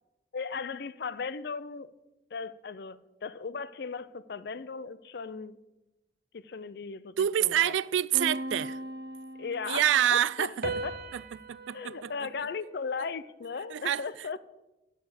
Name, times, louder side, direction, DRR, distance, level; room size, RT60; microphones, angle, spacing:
voice 1, 0.3-1.9 2.3-5.6 6.3-7.7 9.4-11.0 11.7-14.4, left 5 dB, 60° left, 0.5 m, -37 dB
voice 2, 7.2-8.8 9.7-10.5 11.1-11.2 11.5-12.1 13.7-14.0, right 10 dB, 85° right, 0.3 m, -26 dB
sound 1, 8.1-9.9 10.6-13.3, right 2 dB, 55° right, 0.7 m, -39 dB
11.0 x 5.1 x 7.6 m
head